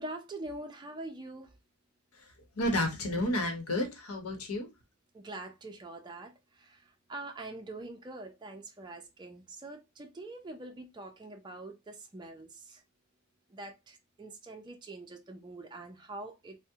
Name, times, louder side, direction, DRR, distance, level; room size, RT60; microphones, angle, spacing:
voice 1, 0.0-1.6 5.1-12.8 13.5-16.6, right 2 dB, 20° right, 0.4 m, -44 dB
voice 2, 2.6-4.7, left 1 dB, 85° left, 0.9 m, -31 dB
3.4 x 2.1 x 2.7 m
head